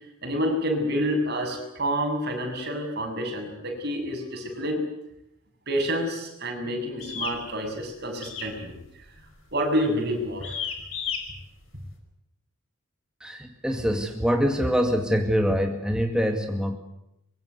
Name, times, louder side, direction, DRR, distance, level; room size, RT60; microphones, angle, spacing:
voice 1, 0.2-4.8 5.7-8.8 9.5-10.6, equal, 45° right, 3 dB, 7.5 m, -28 dB
sound 1, 7.0-7.4 8.2-8.6 8.8-9.2 9.7-10.0 10.4-11.2, left 7 dB, 70° left, 5.5 m, -32 dB
voice 2, 13.2-16.8, equal, 5° right, 3 dB, 2.1 m, -24 dB
24.5 x 23.0 x 8.3 m, 0.82 s
head